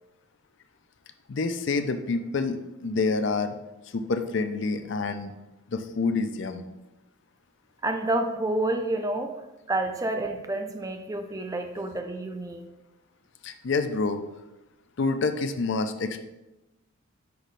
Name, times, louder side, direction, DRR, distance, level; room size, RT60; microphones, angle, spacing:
voice 1, 1.3-3.6 3.9-5.3 5.7-6.7 13.4-14.2 15.0-16.2, left 3 dB, 55° left, 8 dB, 0.4 m, -27 dB
voice 2, 7.8-9.3 9.7-12.7, right 2 dB, 15° right, 5 dB, 0.4 m, -29 dB
5.8 x 3.1 x 5.2 m, 0.99 s
head